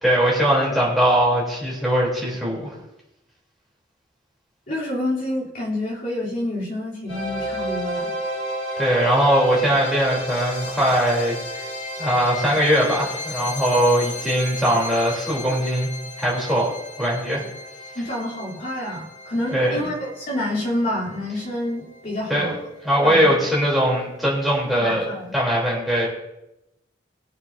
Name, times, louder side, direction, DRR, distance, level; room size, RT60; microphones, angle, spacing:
voice 1, 0.0-2.7 8.8-11.4 12.0-15.9 16.2-16.7 17.0-17.4 19.5-19.8 22.3-22.6 22.8-25.1 25.3-26.1, equal, ahead, -6 dB, 3.4 m, -20 dB
voice 2, 4.7-8.1 17.9-22.6 23.0-23.3 24.8-25.3, left 1 dB, 45° left, -7 dB, 3.4 m, -28 dB
sound 1, 7.1-22.1, equal, 85° left, 3.8 m, -33 dB
21.5 x 7.1 x 2.7 m, 0.91 s
head